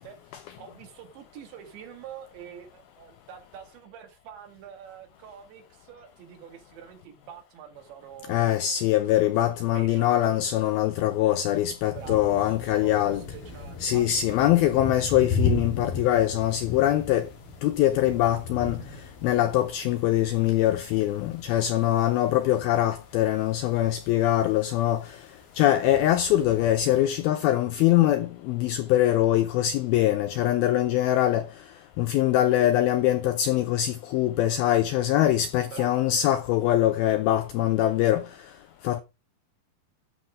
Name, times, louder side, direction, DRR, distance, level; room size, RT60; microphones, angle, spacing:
voice 1, 0.0-8.5 9.1-9.4 9.7-10.4 11.9-14.9 35.6-36.0, right 8 dB, 80° right, 4.2 m, -46 dB
voice 2, 8.3-13.2 13.8-17.3 17.6-18.8 19.2-25.0 25.6-31.5 32.0-38.2 38.8-39.0, left 13 dB, 85° left, 2.2 m, -23 dB
sound 1, 11.9-27.0, left 3 dB, 55° left, 4.8 m, -36 dB
12.0 x 5.8 x 4.9 m
omnidirectional pair, 5.1 m